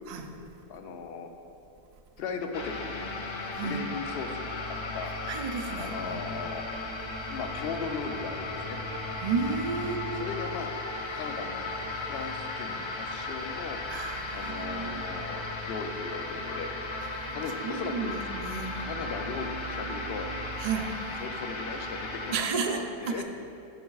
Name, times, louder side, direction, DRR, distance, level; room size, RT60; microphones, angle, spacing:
voice 1, 0.7-1.3 2.2-3.1 3.6-5.1 5.7-6.6 7.3-8.8 9.9-10.7 11.1-11.7 12.1-13.8 14.3-16.7 17.3-18.2 18.8-20.3 21.2-23.2, left 5 dB, 70° left, 5 dB, 0.8 m, -38 dB
sound 1, 2.5-22.4, left 2 dB, 40° left, 0.4 m, -36 dB
voice 2, 3.5-3.8 5.3-6.2 9.2-10.3 13.9-15.2 17.6-18.8 20.6-21.0 22.3-23.2, right 5 dB, 50° right, 5 dB, 0.5 m, -32 dB
11.0 x 6.3 x 2.3 m, 2.9 s
omnidirectional pair, 1.1 m